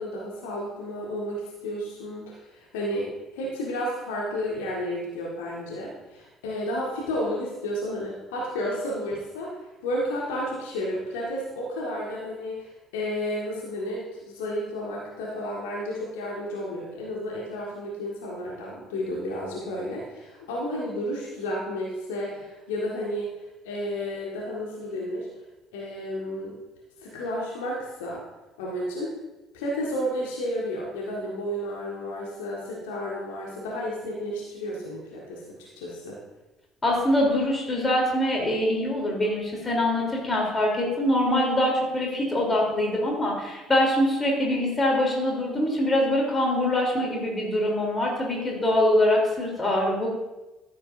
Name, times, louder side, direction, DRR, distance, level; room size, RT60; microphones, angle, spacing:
voice 1, 0.0-9.5 9.8-23.3 23.6-25.3 25.7-26.5 27.0-28.2 28.6-29.1 29.5-36.2, equal, 70° left, -4 dB, 1.7 m, -32 dB
voice 2, 36.8-50.1, left 1 dB, 25° left, -2 dB, 3.3 m, -24 dB
13.5 x 7.9 x 2.6 m, 1.0 s
figure-of-eight pair, 55°, 0 cm